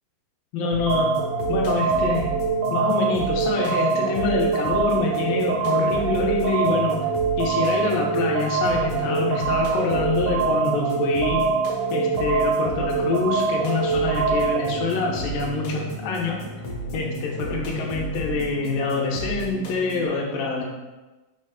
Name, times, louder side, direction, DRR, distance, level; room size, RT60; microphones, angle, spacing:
voice 1, 0.5-1.1 1.5-2.3 2.7-7.0 7.4-11.5 11.9-16.5 16.9-20.6, left 4 dB, 85° left, -1 dB, 2.6 m, -25 dB
sound 1, 0.7-20.1, right 1 dB, 65° left, 2.0 m, -34 dB
sound 2, 0.9-14.8, right 4 dB, 80° right, 1.8 m, -24 dB
6.1 x 3.3 x 5.2 m, 1.1 s
omnidirectional pair, 3.9 m